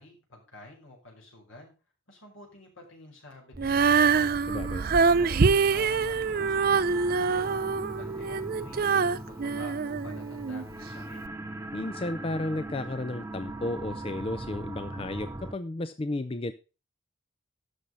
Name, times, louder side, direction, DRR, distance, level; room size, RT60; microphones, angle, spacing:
voice 1, 0.0-1.7 2.1-4.3 4.8-6.8 7.3-7.6 7.9-11.2, left 1 dB, 75° left, 0 dB, 5.0 m, -49 dB
sound 1, 3.5-15.5, right 1 dB, 10° right, 0.7 m, -40 dB
Female singing, 3.6-10.6 11.3-11.4, right 5 dB, 45° right, 0.5 m, -25 dB
voice 2, 4.5-4.8 11.7-16.5, left 2 dB, 25° left, 11 dB, 0.5 m, -33 dB
11.5 x 6.5 x 5.4 m, 0.33 s
head